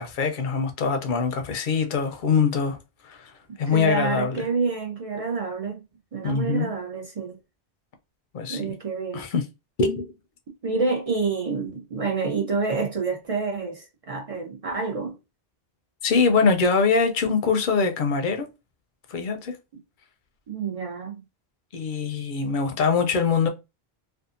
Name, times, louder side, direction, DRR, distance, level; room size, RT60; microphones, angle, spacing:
voice 1, 0.0-2.8 3.0-3.3 3.6-4.4 6.2-6.7 8.3-8.7 9.1-9.4 9.8-10.1 16.0-18.5 19.1-19.6 21.7-23.5, left 5 dB, 60° left, 0.6 m, -23 dB
voice 2, 3.5-5.8 6.1-7.4 8.5-9.2 10.6-15.2 20.5-21.2, right 4 dB, 45° right, 0.5 m, -28 dB
2.7 x 2.3 x 2.4 m
omnidirectional pair, 1.1 m